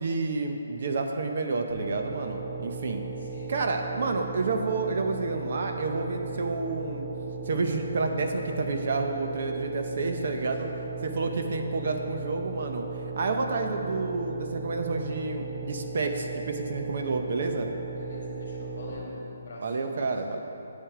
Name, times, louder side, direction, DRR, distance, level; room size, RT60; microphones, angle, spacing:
voice 1, 0.0-3.0 3.5-7.1 7.5-10.7 11.0-12.8 13.2-17.7 19.6-20.4, right 3 dB, 45° right, 4 dB, 0.7 m, -29 dB
sound 1, 1.7-18.9, right 4 dB, 10° right, 2.3 m, -37 dB
voice 2, 3.2-3.5 10.1-10.5 17.9-20.1, left 1 dB, 50° left, -5 dB, 2.0 m, -44 dB
9.1 x 8.2 x 4.8 m, 2.9 s
hypercardioid pair, 175°, 0 cm